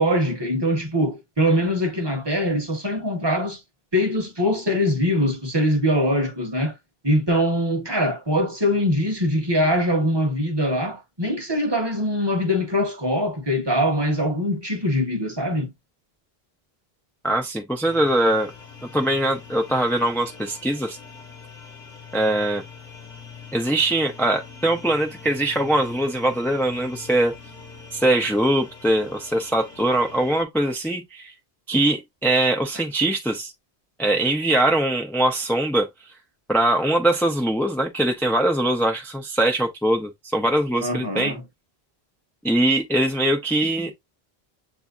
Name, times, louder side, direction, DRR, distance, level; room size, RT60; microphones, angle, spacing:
voice 1, 0.0-3.6 3.9-6.7 7.0-15.7 40.8-41.4, equal, 25° right, 0.9 m, -22 dB
voice 2, 17.2-18.5 18.9-21.0 22.1-22.6 23.5-27.3 27.9-31.3 31.7-33.5 34.0-35.9 36.5-41.3 42.4-43.9, right 1 dB, 5° left, 0.4 m, -22 dB
sound 1, 17.8-30.4, left 5 dB, 50° left, 1.3 m, -43 dB
7.2 x 2.7 x 2.3 m
omnidirectional pair, 1.0 m